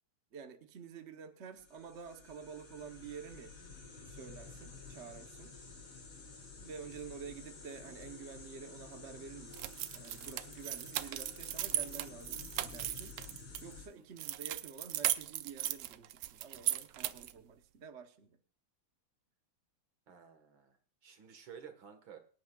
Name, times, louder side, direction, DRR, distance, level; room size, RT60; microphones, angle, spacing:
voice 1, 0.3-3.5 4.1-5.6 6.6-13.2 13.6-18.4, right 6 dB, 45° right, 7 dB, 1.0 m, -49 dB
sound 1, 1.5-13.9, left 4 dB, 70° left, 3.5 m, -51 dB
sound 2, 9.5-13.6 14.2-17.4, right 13 dB, 90° right, 1.6 m, -37 dB
voice 2, 20.1-20.8 21.0-22.2, right 7 dB, 70° right, 7 dB, 2.4 m, -53 dB
23.5 x 10.0 x 2.4 m, 0.43 s
omnidirectional pair, 2.3 m